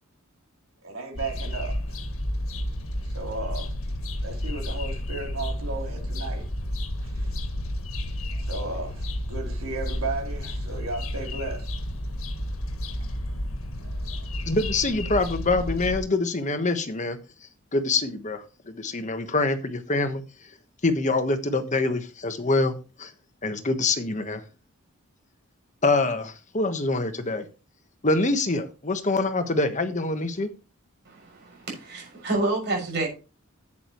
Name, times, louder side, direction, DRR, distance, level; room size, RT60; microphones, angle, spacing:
voice 1, 0.8-2.0 3.0-3.8 4.2-6.5 7.0-7.3 8.3-11.7 13.8-14.2, right 3 dB, 80° right, 3.5 m, -35 dB
sound 1, 1.1-16.0, left 1 dB, 75° left, 1.7 m, -31 dB
voice 2, 14.5-17.2 17.7-20.2 20.8-23.1 23.4-24.4 25.8-27.4 28.0-30.5, left 2 dB, 35° left, 1.3 m, -25 dB
voice 3, 31.0-33.1, right 2 dB, 55° right, 6.5 m, -28 dB
11.0 x 8.7 x 3.1 m
head